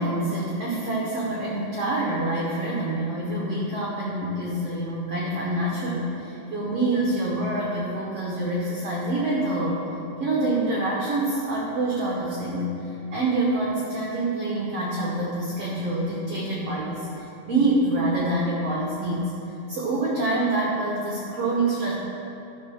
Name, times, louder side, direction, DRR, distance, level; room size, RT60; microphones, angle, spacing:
voice 1, 0.0-9.9 10.2-19.3 19.7-21.9, right 2 dB, 65° right, -4 dB, 1.6 m, -26 dB
12.5 x 4.2 x 6.4 m, 2.8 s
omnidirectional pair, 4.0 m